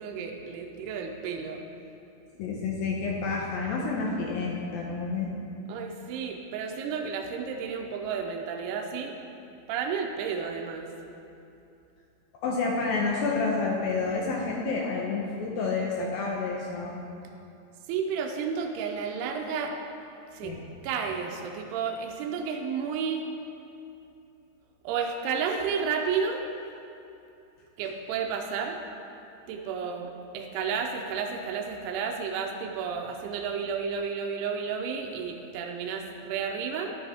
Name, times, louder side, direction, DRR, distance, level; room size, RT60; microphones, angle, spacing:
voice 1, 0.0-1.6 5.7-9.1 9.7-10.9 17.9-19.7 20.3-20.6 20.8-23.3 24.8-26.4 27.8-28.8 29.5-37.0, right 6 dB, 80° right, 2 dB, 2.6 m, -32 dB
voice 2, 2.4-5.3 12.4-16.9 20.4-20.6, left 4 dB, 75° left, -2 dB, 2.3 m, -29 dB
10.5 x 8.7 x 3.5 m, 2.7 s
omnidirectional pair, 4.8 m